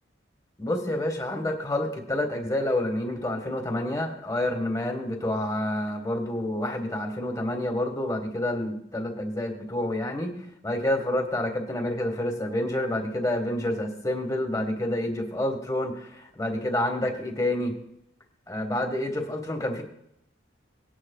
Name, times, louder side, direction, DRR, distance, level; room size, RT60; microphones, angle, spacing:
voice 1, 0.6-10.3 10.6-17.8 18.5-19.8, left 1 dB, 15° left, 3 dB, 1.7 m, -28 dB
19.5 x 9.9 x 2.4 m, 0.76 s
head